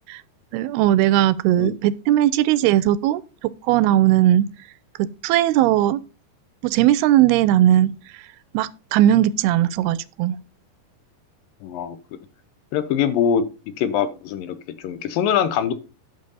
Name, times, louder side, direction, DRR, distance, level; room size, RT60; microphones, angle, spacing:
voice 1, 0.5-4.5 5.0-6.0 6.6-7.9 8.5-10.4, right 13 dB, 90° right, 2.6 m, -18 dB
voice 2, 11.6-12.0 12.7-13.4 13.8-15.7, left 8 dB, 75° left, 2.4 m, -23 dB
11.0 x 6.7 x 4.0 m
omnidirectional pair, 4.4 m